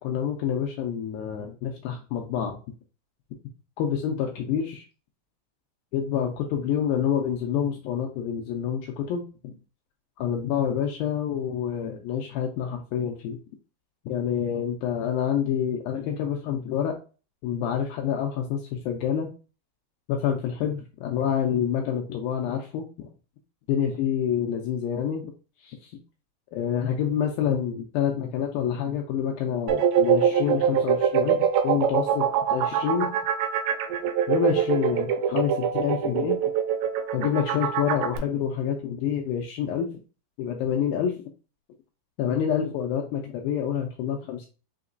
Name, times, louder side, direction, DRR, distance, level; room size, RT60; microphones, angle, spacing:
voice 1, 0.0-2.6 3.8-4.8 5.9-9.6 10.2-13.4 14.1-17.0 17.4-19.3 20.1-23.1 23.7-25.2 25.6-25.9 26.5-33.1 34.3-36.4 37.1-40.0 40.4-41.1 42.2-44.5, left 8 dB, 85° left, 1 dB, 2.1 m, -27 dB
sound 1, 29.7-38.2, right 8 dB, 85° right, 2.6 m, -23 dB
6.0 x 2.8 x 2.6 m, 0.34 s
omnidirectional pair, 4.7 m